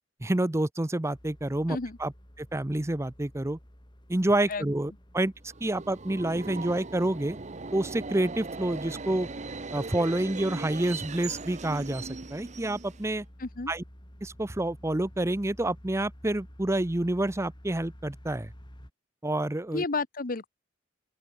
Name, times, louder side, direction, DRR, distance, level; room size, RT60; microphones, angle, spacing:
voice 1, 0.2-2.1 2.4-3.6 4.1-5.3 5.6-7.4 7.7-9.3 9.7-13.3 13.7-13.8 14.2-18.5 19.2-19.8, right 1 dB, 15° right, 0.7 m, -28 dB
sound 1, 1.1-18.9, equal, 25° left, 3.8 m, -51 dB
Subway metro underground, 5.5-13.2, right 3 dB, 40° right, 1.0 m, -39 dB
voice 2, 13.4-13.7 19.7-20.5, left 3 dB, 50° left, 1.1 m, -31 dB
open air
head